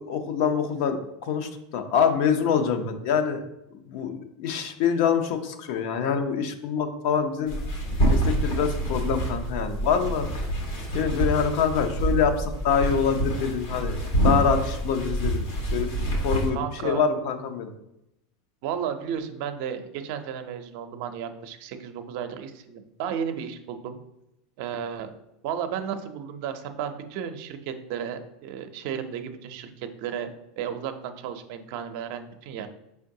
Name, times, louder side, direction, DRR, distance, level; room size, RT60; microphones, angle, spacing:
voice 1, 0.0-3.4 3.9-7.5 8.1-10.3 10.9-14.0 14.2-15.4 15.7-17.7, left 7 dB, 65° left, 7 dB, 0.5 m, -25 dB
sound 1, 7.5-16.5, right 1 dB, 80° left, 1.3 m, -26 dB
voice 2, 16.5-17.0 18.6-24.0 24.6-25.1 25.4-30.3 30.6-32.7, right 8 dB, 65° right, 8 dB, 0.5 m, -33 dB
4.5 x 3.4 x 2.7 m, 0.86 s
supercardioid pair, 125°, 0 cm